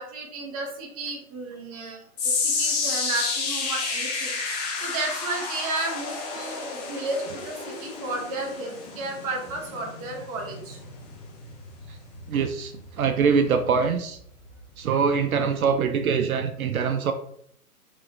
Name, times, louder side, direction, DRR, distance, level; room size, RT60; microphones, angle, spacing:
voice 1, 0.0-4.4 4.8-10.8, right 2 dB, 25° right, 1 dB, 0.7 m, -33 dB
sound 1, 2.2-14.5 14.8-15.2 15.8-15.9, left 4 dB, 25° left, 0.7 m, -31 dB
voice 2, 12.3-14.2 14.8-17.1, right 6 dB, 65° right, 7 dB, 0.5 m, -23 dB
3.8 x 3.0 x 2.6 m, 0.68 s
figure-of-eight pair, 130°, 46 cm